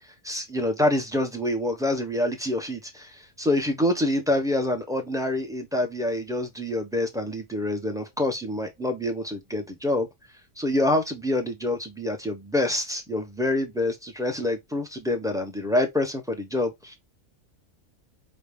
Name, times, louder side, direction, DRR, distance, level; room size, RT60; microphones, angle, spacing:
voice 1, 0.2-10.1 10.6-17.0, left 1 dB, 5° right, 0.4 m, -26 dB
5.1 x 2.1 x 3.4 m
omnidirectional pair, 1.4 m